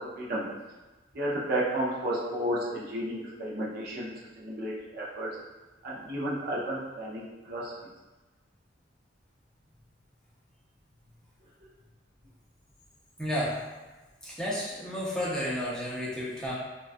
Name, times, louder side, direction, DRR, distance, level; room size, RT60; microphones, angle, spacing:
voice 1, 1.1-5.3 5.8-7.7, right 1 dB, 55° right, -5 dB, 0.5 m, -32 dB
voice 2, 13.2-13.6 14.2-16.5, equal, 5° left, -7 dB, 0.5 m, -32 dB
2.2 x 2.2 x 2.5 m, 1.2 s
head